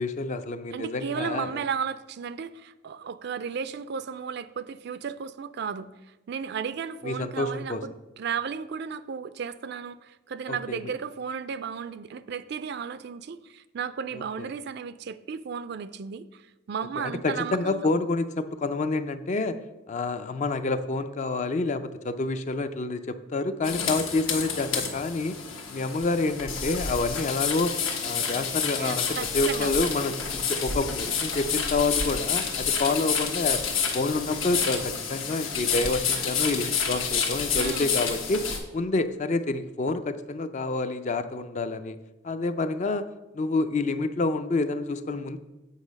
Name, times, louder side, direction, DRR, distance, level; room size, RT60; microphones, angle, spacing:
voice 1, 0.0-1.6 7.0-7.8 10.5-10.9 14.1-14.5 17.0-19.6 19.9-25.3 25.7-29.1 29.3-33.7 33.9-42.0 42.2-43.0 43.3-45.4, left 3 dB, 35° left, 11 dB, 0.4 m, -28 dB
voice 2, 0.7-5.9 6.3-17.9 28.8-29.7 37.6-37.9, right 6 dB, 55° right, 14 dB, 0.4 m, -34 dB
sound 1, 23.6-38.6, left 6 dB, 75° left, 1.3 m, -29 dB
8.2 x 5.6 x 5.2 m, 1.0 s
head